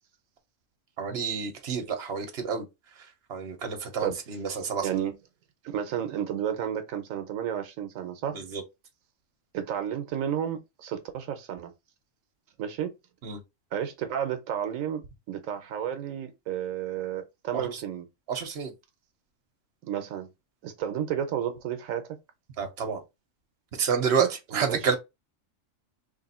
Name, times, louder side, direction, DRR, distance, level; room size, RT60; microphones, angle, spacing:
voice 1, 1.0-2.7 3.0-5.0 8.3-8.6 13.2-13.4 17.5-17.8 18.3-18.7 22.6-23.0 23.7-24.9, right 6 dB, 55° right, 1.2 m, -29 dB
voice 2, 4.8-5.2 5.6-8.4 9.5-11.7 12.6-12.9 13.7-18.0 19.8-20.3 20.6-22.0 24.2-24.3 24.5-24.8, right 9 dB, 85° right, 1.1 m, -32 dB
3.3 x 2.5 x 4.2 m
omnidirectional pair, 1.4 m